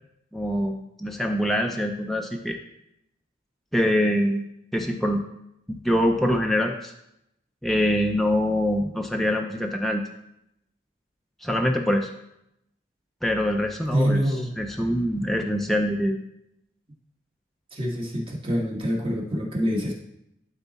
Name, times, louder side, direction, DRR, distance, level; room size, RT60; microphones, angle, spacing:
voice 1, 0.3-2.6 3.7-4.5 4.7-5.2 5.7-6.9 7.6-10.0 11.4-12.1 13.2-14.2 14.6-16.2, equal, ahead, 1 dB, 0.5 m, -24 dB
voice 2, 13.9-14.5 17.7-19.9, equal, 30° right, -1 dB, 1.5 m, -25 dB
11.5 x 4.1 x 4.1 m, 0.81 s
head